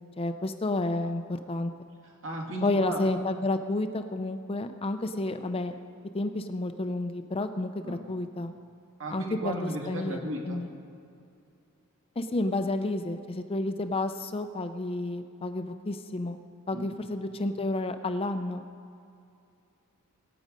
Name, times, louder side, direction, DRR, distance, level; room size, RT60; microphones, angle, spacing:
voice 1, 0.2-1.7 2.6-5.7 6.1-8.5 9.1-10.7 12.2-16.4 16.7-18.6, left 2 dB, 25° left, 8 dB, 0.5 m, -30 dB
voice 2, 2.0-3.1 7.8-8.0 9.0-10.6 16.7-17.0, right 1 dB, 60° right, 0 dB, 2.2 m, -35 dB
21.5 x 8.6 x 5.2 m, 2.5 s
head